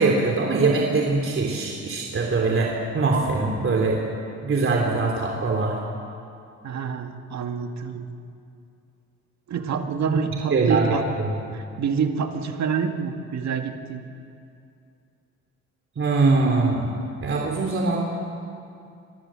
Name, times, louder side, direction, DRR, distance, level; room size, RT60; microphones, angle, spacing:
voice 1, 0.0-4.0 4.4-5.8 10.1-10.2 10.5-10.9 11.3-11.4 16.0-16.9 17.2-18.0, right 3 dB, 45° right, 0 dB, 3.4 m, -22 dB
voice 2, 6.6-8.1 9.5-11.1 11.5-14.0, right 6 dB, 65° right, 5 dB, 2.1 m, -27 dB
25.0 x 20.5 x 7.7 m, 2.5 s
cardioid pair, 90°, 30 cm